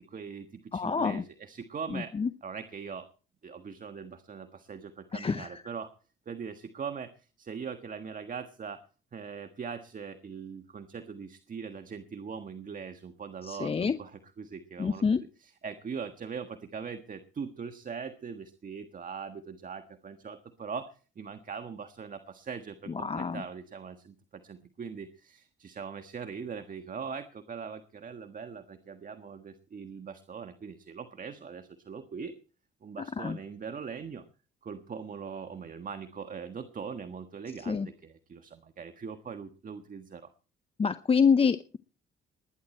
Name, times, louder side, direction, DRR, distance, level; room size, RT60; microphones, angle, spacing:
voice 1, 0.0-2.1 2.4-3.1 3.4-5.9 6.2-8.8 9.1-15.0 15.4-32.3 32.8-34.2 34.6-40.3, right 6 dB, 45° right, 8 dB, 1.5 m, -41 dB
voice 2, 0.7-1.2 1.9-2.3 5.1-5.6 13.4-14.0 14.8-15.2 23.0-23.4 33.2-33.4 37.7-37.9 40.8-41.8, left 5 dB, 30° left, 12 dB, 0.7 m, -27 dB
20.0 x 10.5 x 4.4 m, 0.37 s
cardioid pair, 90°, 20 cm